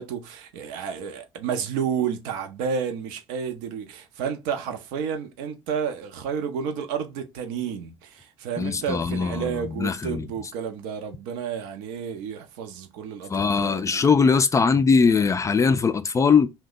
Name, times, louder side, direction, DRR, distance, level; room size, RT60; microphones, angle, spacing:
voice 1, 0.0-14.1, right 7 dB, 65° right, 0.6 m, -31 dB
voice 2, 8.6-10.3 13.3-16.5, left 5 dB, 20° left, 0.3 m, -21 dB
2.8 x 2.2 x 3.7 m
hypercardioid pair, 55°, 14 cm